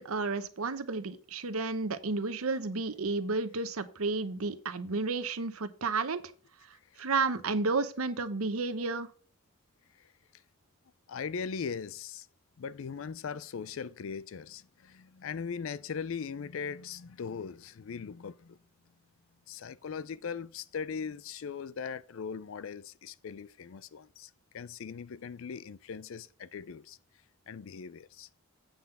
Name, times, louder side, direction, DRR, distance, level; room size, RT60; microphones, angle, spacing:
voice 1, 0.0-6.2 7.0-9.1, right 3 dB, 85° right, 0.9 m, -32 dB
voice 2, 11.1-12.3 12.6-18.6 19.5-27.0 27.5-28.3, left 6 dB, 65° left, 0.4 m, -39 dB
8.5 x 5.8 x 5.4 m
head